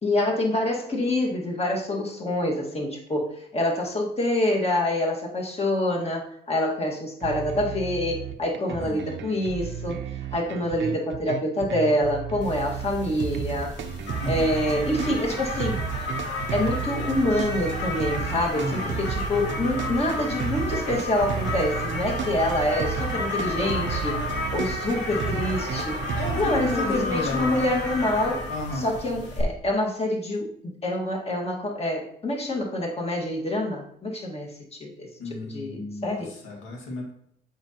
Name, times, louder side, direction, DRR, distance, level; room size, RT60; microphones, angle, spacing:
voice 1, 0.0-10.0 10.3-13.7 14.3-15.8 16.5-26.0 26.4-28.4 28.7-34.5 34.8-36.3, left 1 dB, 30° left, -1 dB, 1.8 m, -26 dB
sound 1, 7.2-26.8, right 8 dB, 70° right, 0.7 m, -33 dB
voice 2, 8.7-9.0 14.2-14.5 18.5-19.0 26.1-27.7 28.5-28.9 35.2-37.1, left 2 dB, 85° left, -1 dB, 2.1 m, -33 dB
sound 2, 12.4-29.4, left 2 dB, 65° left, 2.2 m, -32 dB
7.8 x 5.2 x 2.9 m, 0.71 s
cardioid pair, 90°, 20 cm